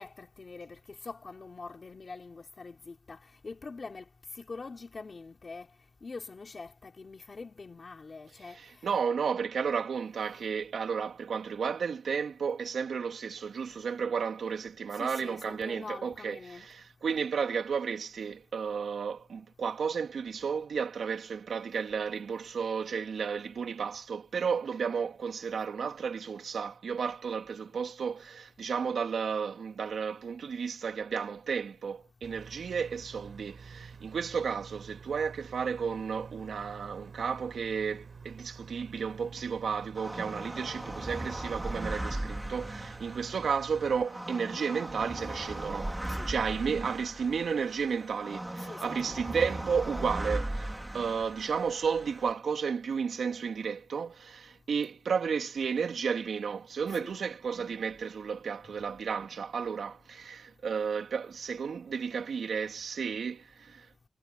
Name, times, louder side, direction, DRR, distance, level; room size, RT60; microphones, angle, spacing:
voice 1, 0.0-5.7 6.0-8.9 10.3-10.5 14.9-16.7 46.1-46.3 48.6-49.3 57.0-57.1, left 4 dB, 35° left, 3.5 m, -45 dB
voice 2, 8.5-63.9, right 6 dB, 70° right, 3.0 m, -33 dB
Refrigerator Humming, 32.2-44.0, right 4 dB, 45° right, 5.6 m, -48 dB
sound 1, 39.9-52.3, right 1 dB, 10° right, 3.2 m, -38 dB
wide cardioid pair, 160°, 0 cm